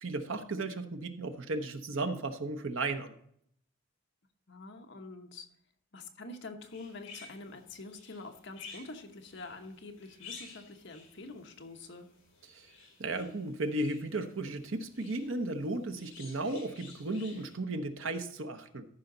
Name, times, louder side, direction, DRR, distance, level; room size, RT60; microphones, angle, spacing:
voice 1, 0.0-3.1 12.5-12.7 13.0-18.9, right 2 dB, 65° right, 7 dB, 0.9 m, -35 dB
voice 2, 4.5-5.5 5.9-12.1, left 3 dB, 55° left, 4 dB, 1.1 m, -46 dB
sound 1, 6.6-17.6, left 5 dB, 70° left, 4.8 m, -53 dB
14.0 x 5.7 x 3.9 m, 0.69 s
head